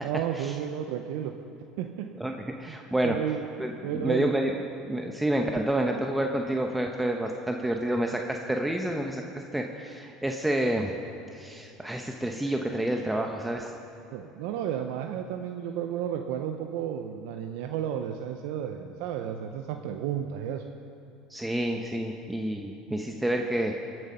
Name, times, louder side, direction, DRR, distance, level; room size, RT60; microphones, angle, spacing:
voice 1, 0.0-1.3 1.8-2.1 2.7-2.8 3.0-3.4 3.8-4.3 14.1-20.6, right 10 dB, 75° right, 5 dB, 0.7 m, -32 dB
voice 2, 2.2-3.2 3.6-9.2 9.5-11.0 11.3-13.7 21.3-23.7, right 1 dB, 5° right, 2 dB, 0.9 m, -29 dB
21.5 x 7.7 x 5.6 m, 2.6 s
supercardioid pair, 105°, 0 cm